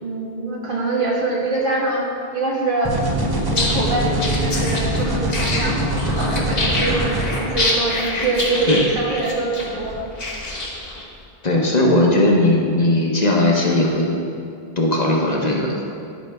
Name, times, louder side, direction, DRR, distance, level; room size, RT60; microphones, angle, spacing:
voice 1, 0.0-2.1 2.3-2.9 3.5-10.1, right 3 dB, 60° right, -2 dB, 1.4 m, -24 dB
sound 1, 2.8-7.2, right 1 dB, 25° right, 0.8 m, -23 dB
sound 2, 3.4-11.0, left 2 dB, 70° left, 1.5 m, -26 dB
voice 2, 11.4-14.2 14.8-15.8, left 1 dB, 45° left, -1 dB, 0.9 m, -18 dB
12.0 x 5.4 x 3.4 m, 2.5 s
omnidirectional pair, 1.0 m